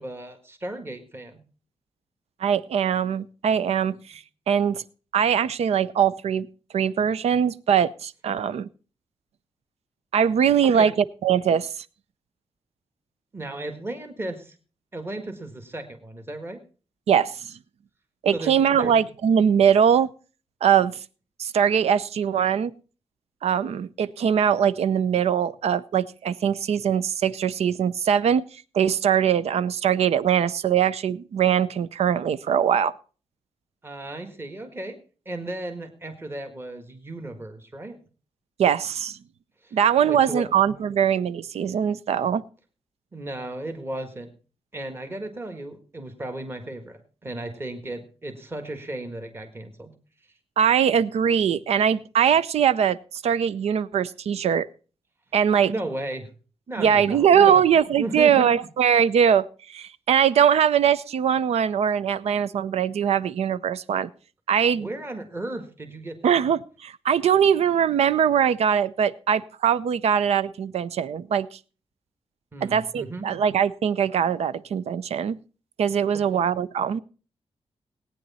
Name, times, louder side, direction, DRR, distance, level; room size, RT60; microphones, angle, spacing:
voice 1, 0.0-1.4 10.6-10.9 13.3-14.5 14.9-16.6 18.3-19.0 33.8-35.0 35.2-38.0 39.6-39.7 40.0-40.5 43.1-44.3 44.7-49.9 55.7-56.3 56.7-57.6 58.0-58.5 64.7-66.3 72.5-73.3 76.3-76.4, right 1 dB, 20° right, 6 dB, 1.6 m, -35 dB
voice 2, 2.4-4.8 5.1-6.5 6.7-8.7 10.1-10.9 11.2-11.7 17.1-17.5 18.2-20.1 20.6-21.0 21.4-22.7 23.4-28.4 28.7-32.9 38.6-39.2 39.7-42.4 50.6-53.0 53.2-54.7 55.3-55.7 56.8-64.1 64.5-64.9 66.2-71.6 72.6-75.4 75.8-77.0, right 8 dB, 85° right, 17 dB, 0.6 m, -21 dB
18.5 x 9.2 x 4.2 m, 0.37 s
wide cardioid pair, 175°, 10 cm